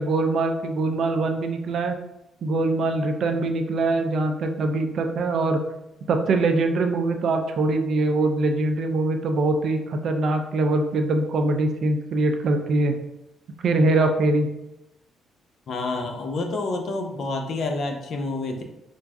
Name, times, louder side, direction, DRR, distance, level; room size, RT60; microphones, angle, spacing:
voice 1, 0.0-1.9 2.4-5.6 6.1-13.0 13.6-14.5, right 2 dB, 65° right, 5 dB, 0.4 m, -23 dB
voice 2, 15.7-18.6, left 2 dB, 60° left, 4 dB, 0.6 m, -28 dB
4.6 x 2.5 x 2.3 m, 0.90 s
cardioid pair, 90°, 0 cm